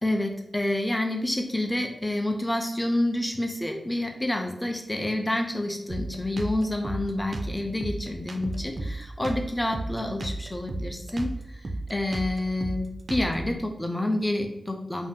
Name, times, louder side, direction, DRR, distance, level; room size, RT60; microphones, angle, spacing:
voice 1, 0.0-11.3 11.9-15.1, left 1 dB, 15° left, 3 dB, 0.4 m, -28 dB
Drum kit, 5.9-13.6, right 2 dB, 50° right, 0.3 m, -34 dB
2.6 x 2.1 x 3.7 m, 0.85 s
wide cardioid pair, 80°, 0 cm